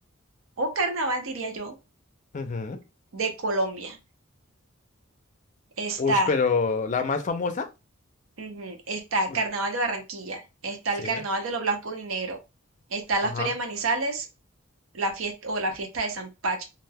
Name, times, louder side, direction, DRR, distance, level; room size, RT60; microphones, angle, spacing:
voice 1, 0.6-1.7 3.1-4.0 5.8-6.3 8.4-12.4 12.9-14.3 14.9-16.6, right 2 dB, 85° right, 5 dB, 0.7 m, -28 dB
voice 2, 2.3-2.8 6.0-7.7 11.0-11.2 13.2-13.5, left 4 dB, 35° left, 8 dB, 0.4 m, -26 dB
2.4 x 2.2 x 3.3 m, 0.26 s
head